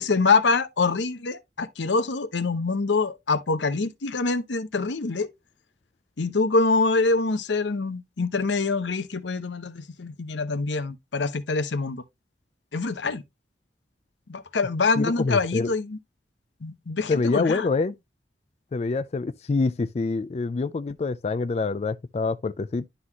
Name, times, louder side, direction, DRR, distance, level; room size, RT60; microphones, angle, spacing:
voice 1, 0.0-5.3 6.2-12.0 12.7-13.2 14.3-16.0 16.6-17.7, left 3 dB, 80° left, 0.8 m, -25 dB
voice 2, 15.0-15.7 17.1-17.9 18.7-22.9, left 3 dB, 35° left, 0.3 m, -26 dB
11.5 x 3.9 x 2.9 m
head